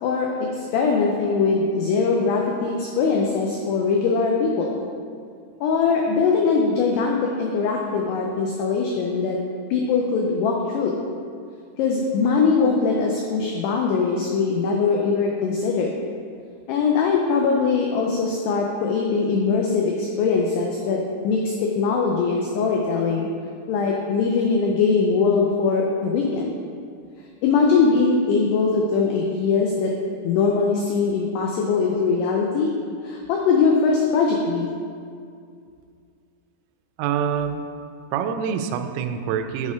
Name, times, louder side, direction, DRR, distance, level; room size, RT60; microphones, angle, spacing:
voice 1, 0.0-4.8 5.6-9.4 9.7-11.0 11.8-15.9 16.7-23.3 23.7-26.6 27.4-29.9 30.2-32.7 33.0-34.7, left 4 dB, 90° left, 0 dB, 2.3 m, -21 dB
voice 2, 37.0-37.7 38.1-39.7, right 7 dB, 90° right, 7 dB, 3.1 m, -25 dB
9.9 x 4.3 x 4.8 m, 2.3 s
omnidirectional pair, 5.5 m